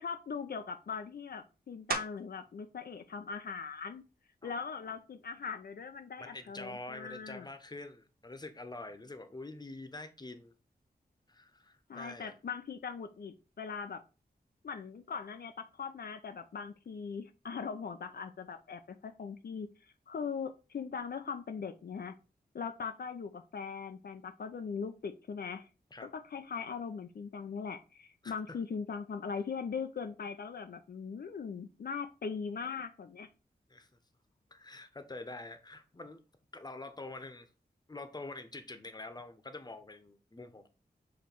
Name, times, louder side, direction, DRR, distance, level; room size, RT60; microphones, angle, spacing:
voice 1, 0.0-4.0 4.4-7.5 11.9-14.0 14.6-22.2 22.5-25.7 26.1-33.3, left 5 dB, 65° left, 0.5 m, -40 dB
sound 1, 1.9-2.5 3.1-7.5 8.0-13.2 13.4-19.1, right 4 dB, 65° right, 0.8 m, -48 dB
voice 2, 6.2-10.5 11.3-12.3 25.9-26.1 28.2-28.6 33.7-33.9 34.5-36.2 36.5-37.5 37.9-40.7, left 2 dB, 25° left, 0.9 m, -46 dB
7.2 x 3.0 x 4.5 m
wide cardioid pair, 90°, 17 cm